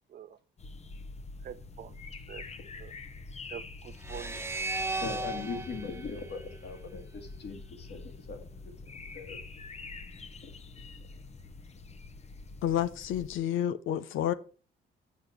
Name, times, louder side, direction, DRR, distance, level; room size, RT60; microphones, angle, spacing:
sound 1, 0.6-13.4, left 3 dB, 35° left, 0.9 m, -46 dB
voice 1, 1.4-2.0 2.3-2.4 2.8-2.9 3.5-4.5, right 9 dB, 50° right, 0.5 m, -45 dB
sound 2, 4.0-7.3, right 2 dB, 10° right, 0.9 m, -37 dB
voice 2, 5.0-9.4 10.4-10.5, left 4 dB, 60° left, 2.1 m, -41 dB
voice 3, 12.6-14.3, left 11 dB, 80° left, 0.7 m, -29 dB
7.4 x 5.0 x 5.8 m
cardioid pair, 90°, 20 cm